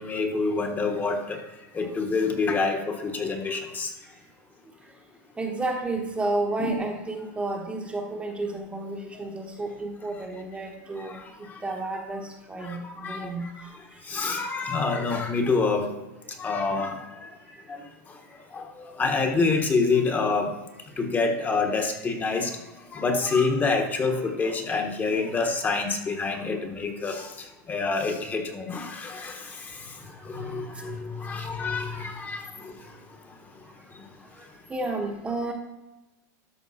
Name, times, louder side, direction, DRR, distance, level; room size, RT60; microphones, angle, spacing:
voice 1, 0.0-1.4 1.7-3.9 6.6-6.8 11.0-11.6 12.6-13.5 14.0-15.9 16.4-17.3 17.7-18.2 18.5-20.5 21.0-22.6 22.9-32.9 33.9-34.0, left 4 dB, 20° left, 5 dB, 1.2 m, -27 dB
voice 2, 5.4-14.0 20.9-21.0 26.3-26.4 30.4-30.9 31.2-31.3 34.3-35.5, right 2 dB, 15° right, 2 dB, 1.0 m, -32 dB
12.5 x 5.2 x 4.2 m, 1.0 s
supercardioid pair, 135°, 9 cm